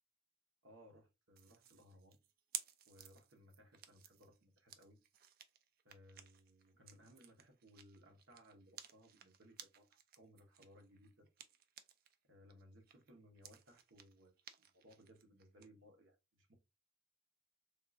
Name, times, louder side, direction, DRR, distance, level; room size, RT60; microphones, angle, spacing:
voice 1, 0.6-2.1 2.9-5.0 5.8-11.3 12.2-16.5, equal, 90° right, 0.9 m, -63 dB
sound 1, 1.4-12.2 12.5-15.7, right 10 dB, 50° right, 0.3 m, -55 dB
3.5 x 2.4 x 2.5 m
head